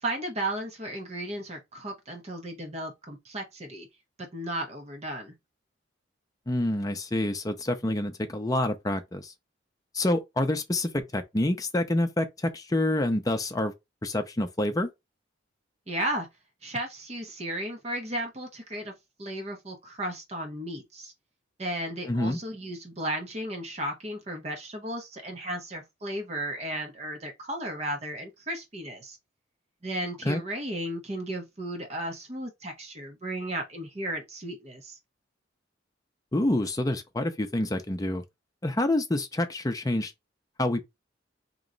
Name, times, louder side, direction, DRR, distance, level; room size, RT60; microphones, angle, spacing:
voice 1, 0.0-3.9 4.2-5.3 15.9-16.3 16.6-18.9 19.2-21.1 21.6-29.2 29.8-35.0, right 1 dB, 35° right, 1.0 m, -34 dB
voice 2, 6.5-9.3 9.9-13.7 14.0-14.9 22.0-22.4 30.3-30.4 36.3-38.2 38.6-40.1 40.6-40.8, left 1 dB, 20° left, 0.5 m, -27 dB
3.1 x 3.0 x 3.8 m
head